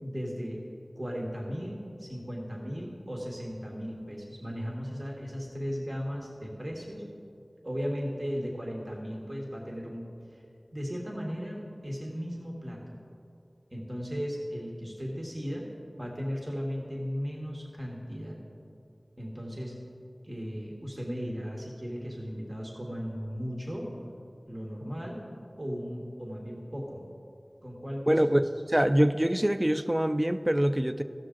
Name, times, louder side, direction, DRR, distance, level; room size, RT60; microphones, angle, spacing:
voice 1, 0.0-0.6 0.9-7.0 7.6-10.0 10.3-10.4 10.7-11.6 11.8-13.0 13.7-15.6 16.0-18.4 19.2-19.8 20.2-23.9 24.5-25.2 25.6-27.0 27.6-28.2, equal, 40° right, -2 dB, 1.5 m, -36 dB
voice 2, 28.1-28.4 28.7-31.0, equal, 20° right, 10 dB, 0.4 m, -24 dB
15.5 x 6.2 x 3.8 m, 2.5 s
wide cardioid pair, 45°, 0 cm